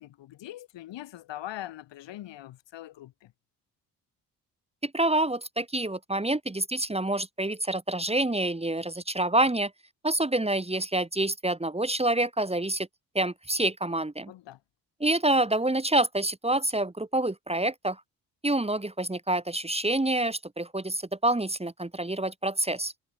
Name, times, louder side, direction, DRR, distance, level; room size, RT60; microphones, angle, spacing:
voice 1, 0.0-3.3 14.3-14.6, left 14 dB, 75° left, 3.6 m, -42 dB
voice 2, 4.8-9.7 10.0-12.9 13.1-14.3 15.0-18.0 18.4-22.9, right 1 dB, 15° right, 2.0 m, -27 dB
hypercardioid pair, 45°, 44 cm